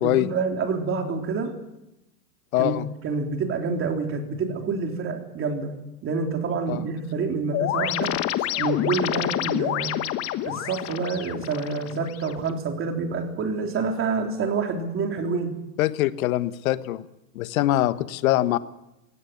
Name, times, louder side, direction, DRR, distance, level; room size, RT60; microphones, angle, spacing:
voice 1, 0.0-1.6 2.6-5.7 6.0-8.2 8.6-10.0 10.5-15.5, right 4 dB, 25° right, 3 dB, 3.7 m, -27 dB
voice 2, 2.5-2.9 6.7-6.8 15.8-17.0 17.3-18.6, left 15 dB, 60° left, 13 dB, 1.4 m, -23 dB
sound 1, 7.5-12.5, left 13 dB, 30° left, 1.3 m, -28 dB
21.5 x 17.0 x 9.4 m, 0.93 s
hypercardioid pair, 125°, 47 cm